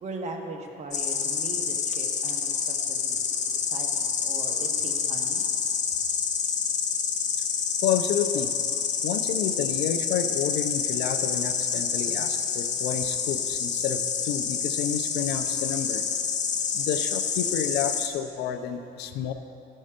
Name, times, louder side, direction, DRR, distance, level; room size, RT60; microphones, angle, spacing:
voice 1, 0.0-2.6 2.9-3.2 3.5-5.4, right 3 dB, 45° right, 2 dB, 1.3 m, -39 dB
Insect, 0.9-18.1, left 6 dB, 45° left, 0.8 m, -28 dB
voice 2, 7.8-8.5 9.0-16.0 16.7-19.3, left 8 dB, 85° left, 8 dB, 0.6 m, -30 dB
14.5 x 5.4 x 5.1 m, 2.8 s
cardioid pair, 110°, 17 cm